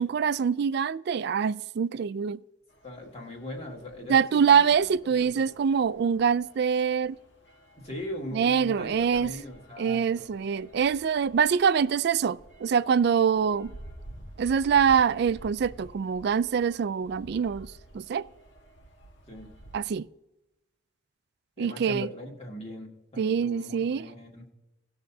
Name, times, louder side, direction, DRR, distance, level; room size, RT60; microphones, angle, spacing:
voice 1, 0.0-2.4 4.1-7.2 8.3-9.3 9.8-13.7 14.4-18.2 19.7-20.1 21.6-22.1 23.2-24.1, right 7 dB, 60° right, 0.3 m, -24 dB
sound 1, 2.7-19.8, right 1 dB, 75° left, 1.5 m, -51 dB
voice 2, 2.8-5.5 7.8-10.3 19.3-19.5 21.6-24.5, left 1 dB, 35° left, 2.0 m, -40 dB
18.5 x 6.5 x 2.7 m
head